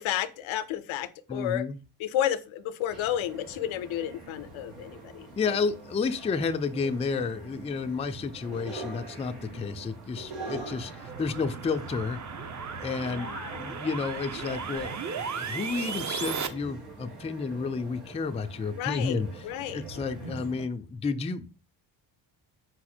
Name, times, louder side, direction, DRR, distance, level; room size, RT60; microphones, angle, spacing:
voice 1, 0.0-1.7 2.0-5.6 13.1-13.7 18.8-19.8, left 11 dB, 70° left, 13 dB, 0.6 m, -32 dB
voice 2, 1.3-1.8 5.4-10.9 11.2-12.2 12.8-13.3 13.6-19.3 19.7-21.5, left 4 dB, 15° left, 8 dB, 0.3 m, -31 dB
sound 1, 2.9-20.7, right 3 dB, 90° right, 1.3 m, -44 dB
sound 2, 10.0-16.5, right 6 dB, 35° right, 0.6 m, -36 dB
4.9 x 2.0 x 4.3 m, 0.35 s
supercardioid pair, 50°, 49 cm